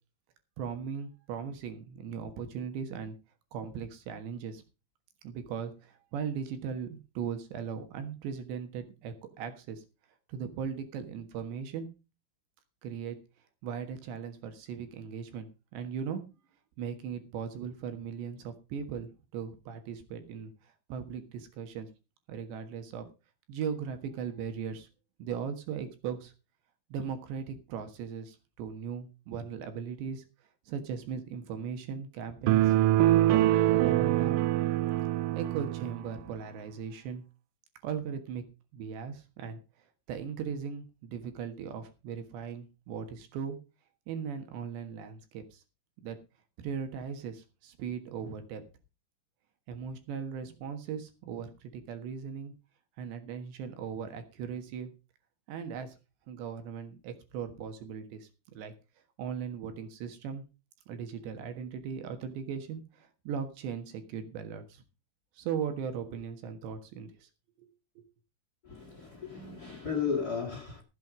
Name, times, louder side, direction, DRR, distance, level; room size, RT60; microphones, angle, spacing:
voice 1, 0.6-3.2 3.5-4.6 5.2-9.8 10.3-11.9 12.8-13.2 13.6-16.2 16.8-21.9 22.3-23.1 23.5-24.9 25.2-26.3 26.9-30.3 30.7-32.7 33.3-34.4 35.3-37.2 37.8-38.4 38.7-39.6 40.1-43.6 44.1-45.6 46.0-46.2 46.6-48.6 49.7-52.5 53.0-54.9 55.5-56.0 56.3-58.7 59.2-60.5 60.9-64.8 65.4-67.3 67.6-67.7 68.0-68.1, right 7 dB, 70° right, 3.5 m, -38 dB
sound 1, 32.5-36.0, right 14 dB, 90° right, 3.2 m, -24 dB
voice 2, 68.6-70.8, left 6 dB, 45° left, 1.2 m, -34 dB
15.0 x 7.9 x 5.0 m
omnidirectional pair, 5.5 m